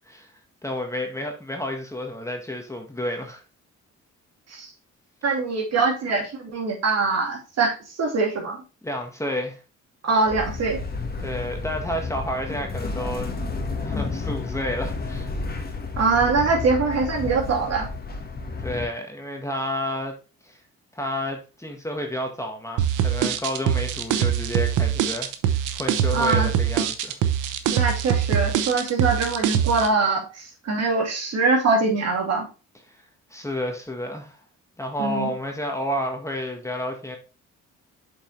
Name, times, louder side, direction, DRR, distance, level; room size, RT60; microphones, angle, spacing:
voice 1, 0.6-3.4 8.8-9.6 11.2-13.4 13.8-15.3 18.6-20.1 20.4-20.6 20.9-27.2 33.3-34.4 34.8-37.2, left 1 dB, 10° left, 1.6 m, -30 dB
voice 2, 5.2-8.6 10.0-10.8 16.0-17.9 26.1-26.5 27.7-32.4 35.0-35.3, right 3 dB, 60° right, 2.7 m, -23 dB
sound 1, 10.3-18.9, left 3 dB, 30° left, 1.5 m, -31 dB
sound 2, 22.8-29.9, right 9 dB, 90° right, 0.9 m, -23 dB
7.4 x 5.4 x 3.2 m
cardioid pair, 90°, 30 cm